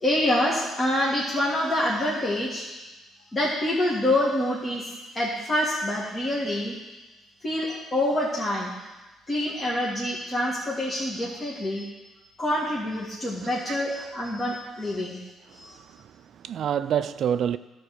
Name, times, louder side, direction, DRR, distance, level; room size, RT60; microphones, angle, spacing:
voice 1, 0.0-2.7 3.3-4.9 5.1-6.8 7.4-8.7 9.3-11.9 12.4-15.2 15.5-15.8, left 1 dB, 30° left, 1.9 m, -26 dB
voice 2, 13.4-13.7 15.5-17.6, right 9 dB, 65° right, 0.3 m, -29 dB
12.0 x 4.2 x 6.5 m
cardioid pair, 85°, 0 cm